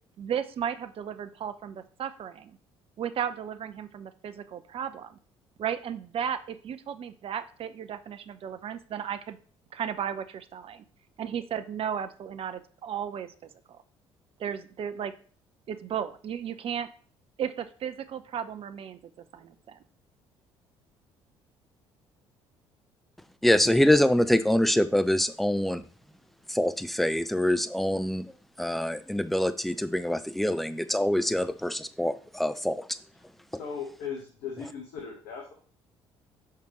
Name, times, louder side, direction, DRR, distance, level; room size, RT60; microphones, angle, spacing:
voice 1, 0.2-2.6 3.0-5.2 5.6-9.4 9.7-10.8 11.2-13.3 13.7-13.8 14.4-15.1 15.7-16.9 17.4-19.0 19.3-19.8, right 8 dB, 40° right, 11 dB, 0.7 m, -34 dB
voice 2, 23.4-25.8 26.5-28.3 28.6-32.8, left 1 dB, ahead, 11 dB, 0.6 m, -25 dB
voice 3, 33.5-35.5, left 6 dB, 65° left, 0 dB, 1.3 m, -38 dB
6.5 x 5.1 x 3.1 m, 0.43 s
figure-of-eight pair, 50°, 14 cm